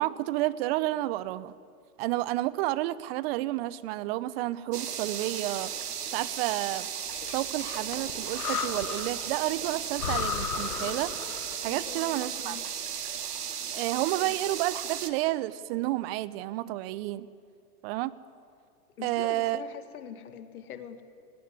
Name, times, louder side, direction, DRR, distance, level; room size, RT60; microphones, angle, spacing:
voice 1, 0.0-1.5 2.0-5.7 6.1-6.9 7.3-11.1 11.6-12.6 13.7-17.3 17.8-18.1 19.0-19.6, right 17 dB, 40° right, 18 dB, 0.8 m, -30 dB
sound 1, 4.7-15.1, right 8 dB, 85° right, 1.7 m, -35 dB
Breathing, 7.1-9.3 9.6-9.7 10.0-11.7, left 8 dB, 90° left, 1.4 m, -35 dB
voice 2, 11.7-12.6 14.2-14.3 19.0-21.0, left 9 dB, 70° left, 8 dB, 2.2 m, -43 dB
19.0 x 17.5 x 9.8 m, 2.3 s
hypercardioid pair, 120°, 45 cm